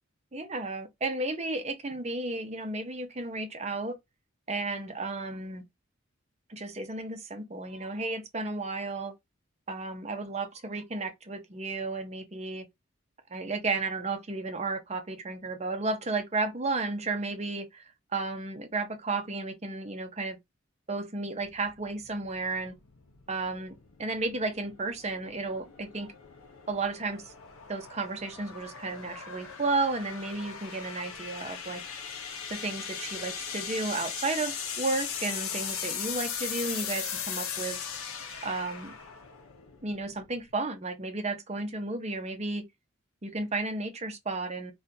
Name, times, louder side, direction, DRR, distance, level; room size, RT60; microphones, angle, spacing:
voice 1, 0.3-3.9 4.5-5.6 6.5-9.1 9.7-12.7 13.3-17.8 18.1-20.4 20.9-22.7 23.3-26.1 26.7-27.3 27.7-31.8 32.5-37.8 38.4-38.9 39.8-42.6 43.2-44.7, right 3 dB, 30° right, 0.6 m, -33 dB
sound 1, 21.4-40.5, left 7 dB, 80° left, 0.6 m, -39 dB
3.6 x 2.4 x 2.7 m
head